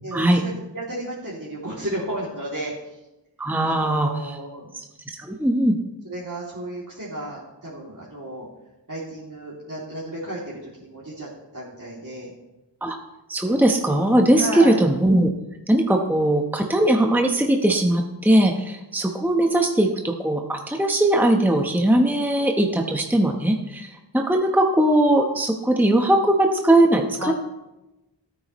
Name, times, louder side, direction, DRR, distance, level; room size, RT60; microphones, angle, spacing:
voice 1, 0.0-3.0 3.6-4.7 6.0-8.5 8.9-12.3 14.4-14.8 27.2-27.3, right 1 dB, 45° right, -8 dB, 2.7 m, -33 dB
voice 2, 3.4-4.4 5.2-5.8 12.8-13.0 13.3-15.3 15.7-27.3, right 1 dB, 5° right, 2 dB, 1.0 m, -20 dB
16.5 x 9.4 x 3.1 m, 0.97 s
wide cardioid pair, 50°, 44 cm